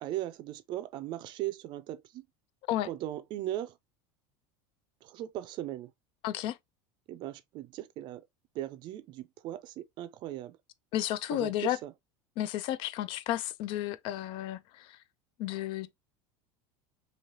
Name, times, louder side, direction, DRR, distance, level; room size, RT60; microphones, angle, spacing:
voice 1, 0.0-2.3 2.9-3.7 5.0-5.9 7.1-8.2 8.5-10.6 11.3-11.9, right 13 dB, 45° right, 0.4 m, -38 dB
voice 2, 6.2-6.6 10.9-11.8 12.4-15.0 15.4-15.9, left 13 dB, 50° left, 0.4 m, -32 dB
3.0 x 2.8 x 2.7 m
supercardioid pair, 135°, 11 cm